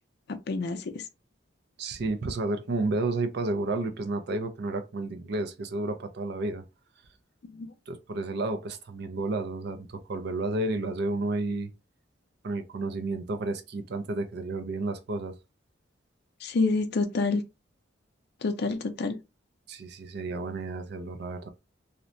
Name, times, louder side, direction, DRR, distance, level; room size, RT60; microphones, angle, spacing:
voice 1, 0.5-1.0 7.5-7.7 16.4-17.4 18.4-19.2, left 3 dB, 60° left, 0.4 m, -28 dB
voice 2, 1.8-6.6 7.9-11.7 12.4-15.4 19.7-21.5, right 2 dB, 60° right, 0.5 m, -31 dB
2.7 x 2.1 x 2.5 m
head